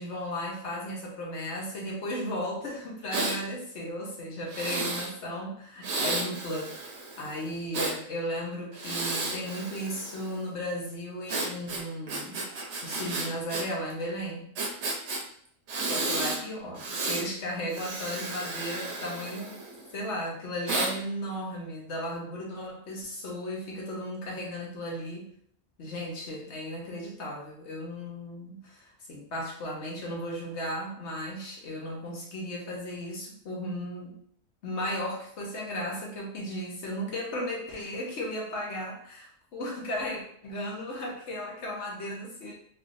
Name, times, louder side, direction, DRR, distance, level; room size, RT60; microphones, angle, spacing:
voice 1, 0.0-12.5 12.8-14.5 15.8-19.6 19.9-25.3 25.8-34.1 34.6-42.5, equal, 65° left, -2 dB, 1.0 m, -35 dB
Breathing, 3.1-3.4 4.5-5.1 5.8-8.0 8.7-10.4 11.3-13.6 13.9-14.0 14.6-15.2 15.7-16.4 16.8-17.3 17.7-19.9 20.7-20.9, right 2 dB, 65° right, 0.9 m, -32 dB
3.2 x 2.5 x 2.5 m, 0.62 s
omnidirectional pair, 1.4 m